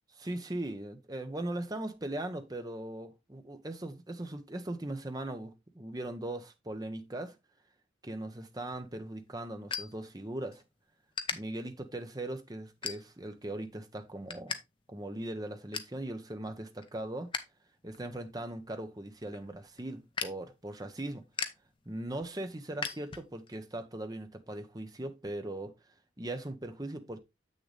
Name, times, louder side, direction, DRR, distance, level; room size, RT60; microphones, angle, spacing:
voice 1, 0.1-7.3 8.0-10.6 11.3-14.6 14.9-17.3 17.8-21.3 21.9-25.7 26.2-27.2, right 1 dB, 20° right, 0.9 m, -39 dB
sound 1, 8.6-10.6 11.1-11.4 11.9-12.2 12.8-13.4 13.8-14.6 14.9-15.0 15.3-16.0 16.4-17.5 17.8-23.6, left 6 dB, 25° left, 0.7 m, -40 dB
7.7 x 6.5 x 3.3 m
head